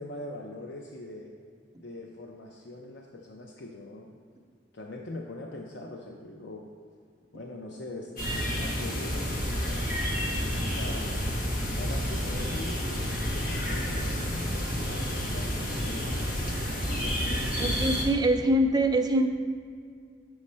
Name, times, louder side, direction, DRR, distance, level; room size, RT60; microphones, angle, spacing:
voice 1, 0.0-1.3 1.8-4.1 4.7-6.7 7.3-10.1 10.5-11.2 11.7-16.3 16.8-18.0, left 2 dB, 70° left, 1 dB, 0.5 m, -42 dB
sound 1, 8.2-18.0, equal, 50° left, 1.3 m, -30 dB
voice 2, 17.6-19.3, right 1 dB, 20° right, 5 dB, 0.4 m, -24 dB
6.3 x 6.2 x 4.2 m, 2.1 s
head